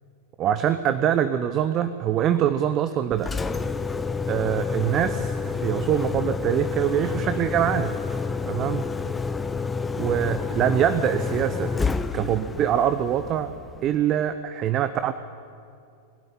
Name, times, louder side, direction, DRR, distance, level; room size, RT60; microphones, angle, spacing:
voice 1, 0.4-3.3 4.3-7.9 8.5-8.9 10.0-11.7 12.1-13.5 13.8-15.1, right 10 dB, 35° right, 11 dB, 0.8 m, -24 dB
Engine, 3.1-14.1, left 4 dB, 10° left, 0.8 m, -29 dB
23.0 x 12.0 x 9.6 m, 2.4 s
figure-of-eight pair, 90°, 0 cm